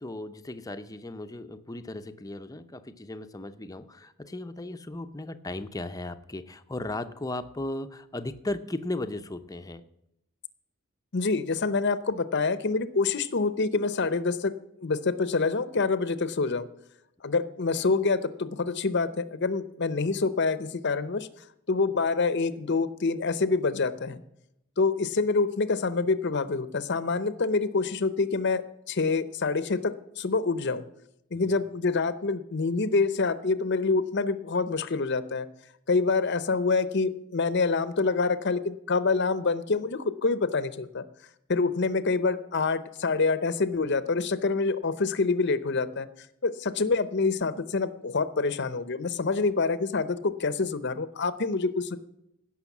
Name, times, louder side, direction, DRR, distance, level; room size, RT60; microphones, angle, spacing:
voice 1, 0.0-9.8 31.4-31.6, left 2 dB, 15° left, 9 dB, 0.6 m, -36 dB
voice 2, 11.1-14.5 14.8-16.7 17.2-21.3 21.7-24.2 24.8-28.6 28.9-30.8 31.3-35.5 35.9-41.0 41.5-46.1 46.4-52.0, left 4 dB, 55° left, 13 dB, 0.7 m, -26 dB
16.0 x 6.3 x 7.2 m, 0.82 s
head